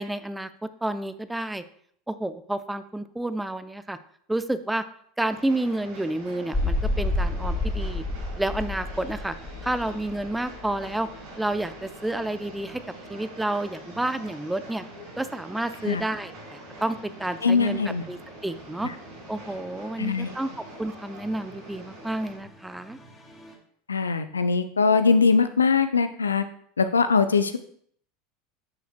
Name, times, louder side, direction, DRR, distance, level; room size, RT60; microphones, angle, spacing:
voice 1, 0.0-1.6 2.1-4.0 4.3-4.8 5.2-8.0 8.4-9.3 9.6-11.1 11.4-12.8 13.1-14.8 15.2-17.8 18.1-18.9 19.3-20.5 20.8-23.0, right 1 dB, 5° right, 12 dB, 0.5 m, -30 dB
Train, 5.3-22.4, right 1 dB, 70° right, 3.2 m, -45 dB
sound 1, 6.5-23.5, left 2 dB, 20° left, 2.3 m, -35 dB
voice 2, 17.4-18.0 18.8-18.9 20.0-20.3 23.9-26.4 26.8-27.6, left 5 dB, 85° left, 11 dB, 0.4 m, -21 dB
10.5 x 6.9 x 2.2 m, 0.63 s
hypercardioid pair, 80°, 0 cm